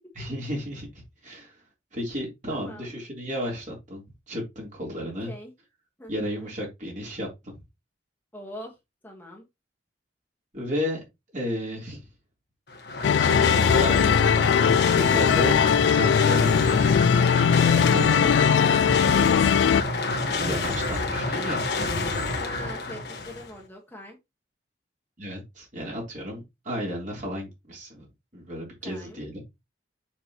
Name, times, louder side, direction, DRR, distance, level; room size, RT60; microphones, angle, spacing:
voice 1, 0.2-0.9 1.2-1.5 1.9-5.3 6.1-7.5 10.5-11.0 11.3-12.0 13.2-14.1 14.9-17.2 17.7-18.5 20.3-21.6 25.2-28.1 28.3-29.4, equal, 45° right, 3.7 m, -33 dB
voice 2, 2.5-3.0 5.2-5.5 6.0-6.5 8.3-8.8 9.0-9.4 22.4-24.2 28.8-29.2, equal, 10° left, 1.7 m, -42 dB
sound 1, 12.7-23.5, left 2 dB, 60° left, 1.5 m, -28 dB
sound 2, 13.0-19.8, left 7 dB, 85° left, 0.3 m, -20 dB
7.1 x 6.1 x 3.1 m
head